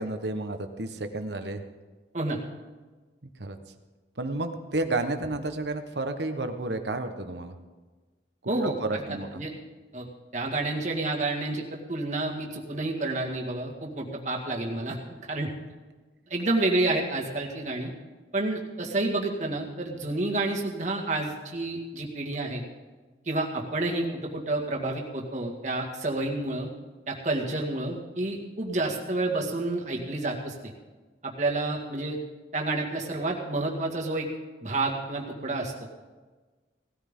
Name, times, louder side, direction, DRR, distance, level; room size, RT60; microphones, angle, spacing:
voice 1, 0.0-1.6 3.4-3.6 4.2-7.5 8.6-9.4, right 2 dB, 70° right, 7 dB, 1.2 m, -31 dB
voice 2, 8.5-9.0 9.3-9.5 9.9-10.1 10.3-15.0 15.3-15.5 16.3-17.9 18.3-22.6 23.3-26.7 27.1-30.7 31.2-32.2 32.5-34.3 34.6-35.7, right 2 dB, 40° right, -1 dB, 2.0 m, -29 dB
18.5 x 13.5 x 3.8 m, 1.3 s
head